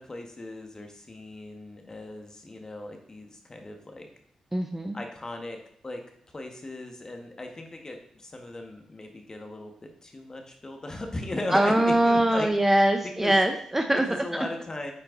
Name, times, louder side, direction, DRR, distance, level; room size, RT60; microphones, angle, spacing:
voice 1, 0.0-4.1 4.9-5.6 5.8-6.0 6.3-12.5 13.2-13.3 14.0-14.9, left 2 dB, 30° left, 4 dB, 1.5 m, -37 dB
voice 2, 4.5-5.0 11.5-14.0, right 1 dB, 15° right, 5 dB, 0.7 m, -22 dB
8.7 x 4.4 x 3.9 m, 0.64 s
cardioid pair, 65°, 2 cm